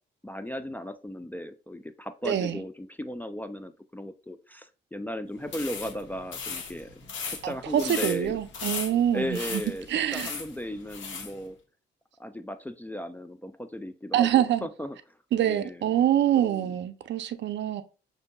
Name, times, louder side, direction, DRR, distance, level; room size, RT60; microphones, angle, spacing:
voice 1, 0.2-8.4 9.1-9.9 10.1-11.6 12.2-15.0 15.4-16.0 16.4-16.7, left 1 dB, 10° left, 0.3 m, -36 dB
voice 2, 2.2-2.6 7.4-9.6 9.9-10.3 14.1-14.7 15.3-17.8, right 11 dB, 65° right, 0.5 m, -25 dB
sound 1, 5.4-11.3, left 5 dB, 75° left, 1.0 m, -37 dB
6.4 x 2.7 x 2.2 m
cardioid pair, 90°, 20 cm